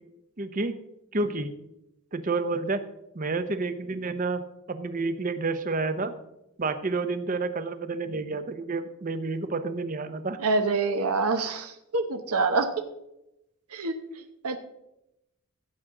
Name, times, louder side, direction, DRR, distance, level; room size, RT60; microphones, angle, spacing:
voice 1, 0.4-0.8 1.1-1.5 2.1-2.8 3.1-6.1 6.6-10.4, right 3 dB, 35° right, 11 dB, 0.7 m, -29 dB
voice 2, 10.4-12.7 13.7-13.9 14.4-14.6, right 3 dB, 80° right, 7 dB, 0.9 m, -26 dB
16.0 x 7.7 x 3.7 m, 0.88 s
head